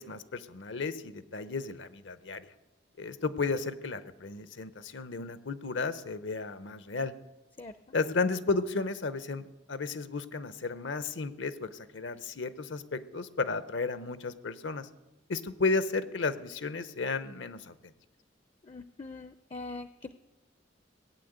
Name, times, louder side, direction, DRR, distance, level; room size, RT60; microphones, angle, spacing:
voice 1, 0.0-2.5 3.0-7.1 7.9-14.9 15.3-17.7, left 3 dB, 75° left, 13 dB, 0.9 m, -33 dB
voice 2, 18.6-20.1, left 3 dB, 30° left, 11 dB, 0.5 m, -42 dB
18.0 x 8.9 x 8.0 m, 1.0 s
head